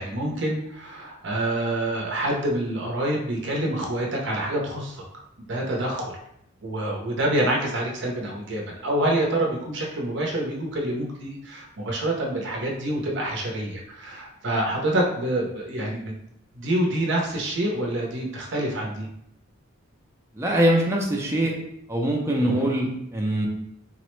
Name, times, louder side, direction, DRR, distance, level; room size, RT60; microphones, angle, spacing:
voice 1, 0.0-5.0 5.4-6.1 6.6-16.1 16.5-19.1 22.4-22.7, right 1 dB, 55° right, -1 dB, 0.6 m, -27 dB
voice 2, 20.4-21.5 21.9-23.5, right 1 dB, 10° right, -2 dB, 0.4 m, -23 dB
3.8 x 2.0 x 3.0 m, 0.75 s
head